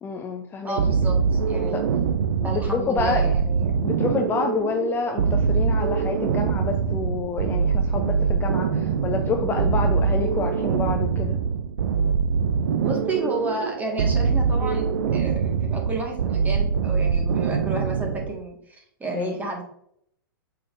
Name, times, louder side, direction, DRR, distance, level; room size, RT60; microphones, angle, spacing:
voice 1, 0.0-0.8 1.7-1.8 2.4-3.3 3.8-11.4 19.1-19.4, left 5 dB, 20° left, 4 dB, 0.6 m, -28 dB
voice 2, 0.6-1.8 2.4-3.8 12.8-19.6, right 2 dB, 15° right, 1 dB, 1.7 m, -32 dB
sound 1, 0.8-18.4, right 6 dB, 65° right, 0.5 m, -23 dB
7.6 x 5.8 x 2.6 m, 0.71 s
hypercardioid pair, 110°, 12 cm